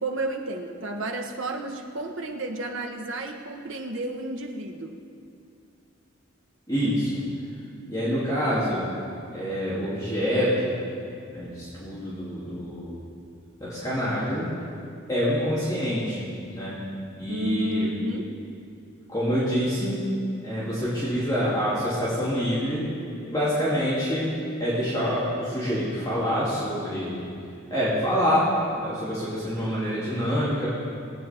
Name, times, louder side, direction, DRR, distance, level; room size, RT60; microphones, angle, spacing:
voice 1, 0.0-5.0 17.3-18.3, right 1 dB, 70° right, 3 dB, 1.2 m, -31 dB
voice 2, 6.7-7.1 7.9-8.9 9.3-10.8 11.3-13.0 13.6-14.5 15.1-16.8 17.2-17.9 19.1-20.1 20.4-22.8 23.3-24.3 24.6-27.3 27.7-30.7, equal, 15° left, -10 dB, 2.6 m, -26 dB
20.0 x 9.3 x 4.4 m, 2.5 s
head